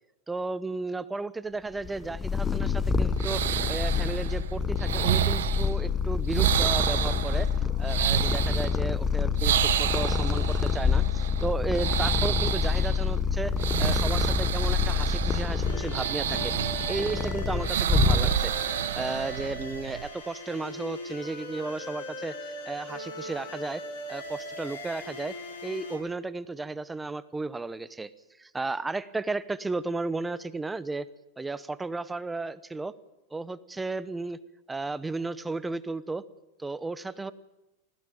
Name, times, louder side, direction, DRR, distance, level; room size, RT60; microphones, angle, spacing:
voice 1, 0.3-3.4 3.7-7.5 7.8-16.5 16.9-18.5 18.9-23.8 24.1-25.3 25.6-28.1 28.4-31.1 31.4-32.9 33.3-34.4 34.7-36.2 36.6-37.3, right 3 dB, 10° right, 16 dB, 0.9 m, -34 dB
Purr, 1.8-18.7, left 6 dB, 15° left, 0.7 m, -27 dB
sound 1, 2.5-20.1, right 10 dB, 80° right, 1.0 m, -30 dB
sound 2, 15.6-26.0, left 1 dB, 70° left, 7.2 m, -40 dB
19.5 x 16.0 x 9.1 m, 0.98 s
hypercardioid pair, 120°, 0 cm